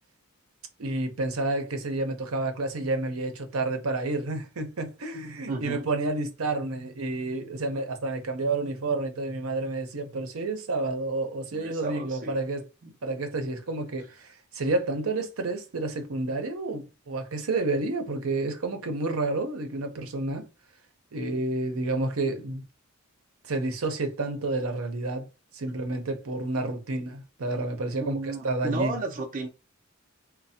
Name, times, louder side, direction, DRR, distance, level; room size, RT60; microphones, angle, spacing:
voice 1, 0.8-12.6 13.0-14.1 14.5-20.5 21.1-22.6 23.4-25.3 25.5-28.1 28.4-29.0, right 2 dB, 80° right, 0.7 m, -30 dB
voice 2, 5.5-5.8 11.5-12.4 12.8-12.9 28.0-29.5, right 3 dB, 40° right, 0.4 m, -33 dB
3.2 x 2.1 x 2.7 m
head